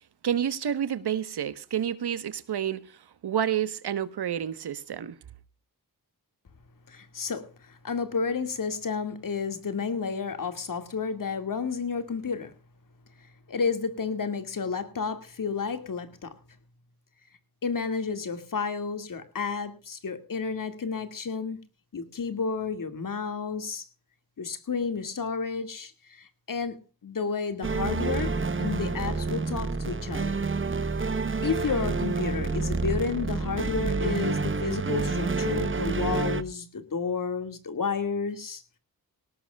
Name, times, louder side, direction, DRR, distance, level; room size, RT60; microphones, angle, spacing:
voice 1, 0.2-2.8 3.2-5.1, right 9 dB, 85° right, 1.3 m, -29 dB
voice 2, 6.9-12.5 13.5-16.3 17.6-21.6 21.9-23.8 24.4-30.5 31.4-38.6, left 5 dB, 55° left, 2.3 m, -31 dB
sound 1, 27.6-36.4, right 4 dB, 30° right, 1.1 m, -28 dB
18.5 x 18.5 x 2.4 m
wide cardioid pair, 100°, 38 cm